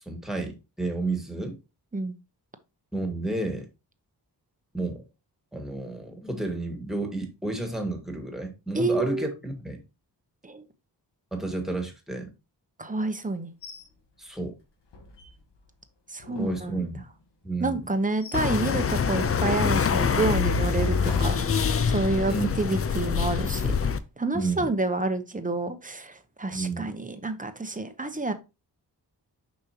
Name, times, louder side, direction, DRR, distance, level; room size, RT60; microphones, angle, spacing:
voice 1, 0.0-1.6 2.9-3.7 4.7-5.0 5.5-9.8 11.3-12.3 14.2-14.5 16.4-17.0 17.4-17.8 22.3-22.5 24.3-24.7 26.5-26.9, right 2 dB, ahead, 1.8 m, -31 dB
voice 2, 8.7-9.3 10.4-10.6 12.8-13.5 16.1-16.9 17.6-21.3 21.9-23.7 24.2-28.3, right 3 dB, 20° right, 0.8 m, -29 dB
sound 1, 13.6-13.9 14.3-14.4 14.9-15.7 16.2-17.2 17.8-18.6 19.0-19.2 19.8-22.2 22.6-22.8, left 3 dB, 80° left, 1.3 m, -40 dB
sound 2, 18.3-24.0, left 6 dB, 35° left, 0.5 m, -25 dB
6.7 x 5.4 x 2.9 m
wide cardioid pair, 100°, 42 cm